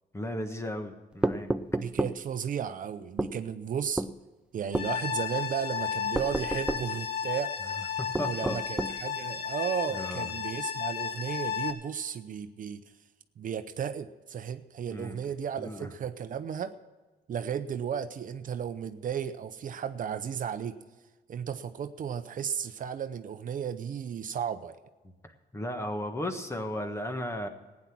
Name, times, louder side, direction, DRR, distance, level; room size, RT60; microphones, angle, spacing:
voice 1, 0.1-1.5 8.0-8.6 9.9-10.3 14.9-15.2 15.6-15.9 25.0-27.5, left 1 dB, 15° left, 6 dB, 1.4 m, -35 dB
sound 1, 1.2-2.2 3.2-3.4 4.0-4.1 4.7-4.9 6.1-6.9 8.1-9.0, right 1 dB, 5° right, 0.5 m, -30 dB
voice 2, 1.8-4.0 4.5-7.6 8.2-12.8 13.4-16.7 17.3-20.8 21.3-24.8, right 8 dB, 55° right, 10 dB, 0.7 m, -34 dB
sound 2, 4.7-11.7, left 7 dB, 75° left, 1.5 m, -33 dB
16.0 x 9.7 x 6.0 m, 1.2 s
cardioid pair, 135°, 17 cm